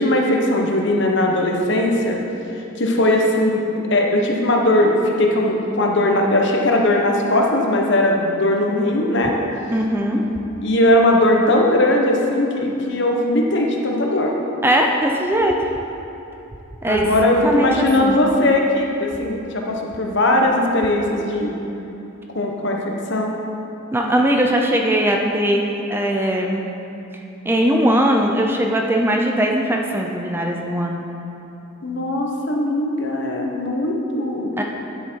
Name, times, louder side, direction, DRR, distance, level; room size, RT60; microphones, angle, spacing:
voice 1, 0.0-2.2 2.8-3.6 3.9-9.3 10.6-14.3 16.9-21.5 22.3-23.3 31.8-34.5, left 1 dB, 55° left, 0 dB, 1.1 m, -19 dB
voice 2, 9.7-10.2 14.6-15.7 16.8-17.2 17.4-18.2 23.9-26.7 27.5-31.0 34.6-34.7, equal, 10° right, 1 dB, 0.5 m, -20 dB
10.0 x 7.8 x 4.6 m, 2.9 s
head